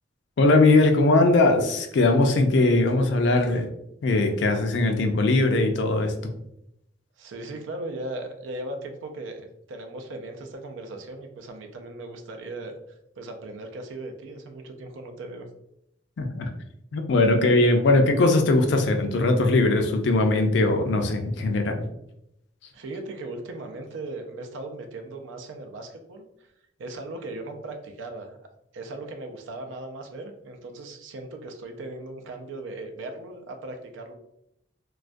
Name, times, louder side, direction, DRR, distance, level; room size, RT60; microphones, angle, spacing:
voice 1, 0.4-3.7 4.0-6.1 16.2-16.5 16.9-21.9, left 2 dB, 65° left, 5 dB, 0.4 m, -20 dB
voice 2, 7.2-12.8 13.2-15.5 22.7-26.2 26.8-28.4 28.7-34.2, right 2 dB, 85° right, 4 dB, 0.4 m, -38 dB
2.3 x 2.1 x 2.5 m, 0.80 s
head